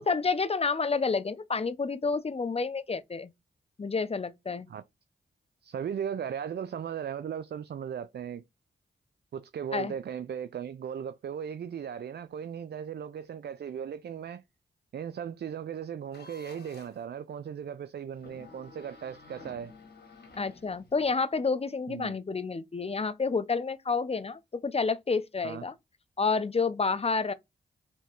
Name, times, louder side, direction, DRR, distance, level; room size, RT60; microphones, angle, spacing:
voice 1, 0.0-3.3 3.8-4.7 9.7-9.9 20.4-25.7 26.2-27.3, left 4 dB, 30° left, 0.6 m, -29 dB
voice 2, 5.6-8.4 9.3-14.4 14.9-19.7 21.9-22.2 25.4-25.6, right 8 dB, 55° right, 0.4 m, -37 dB
sound 1, 16.1-17.0 18.1-21.2, left 3 dB, 55° left, 1.6 m, -52 dB
3.5 x 2.9 x 4.4 m
cardioid pair, 45°, 20 cm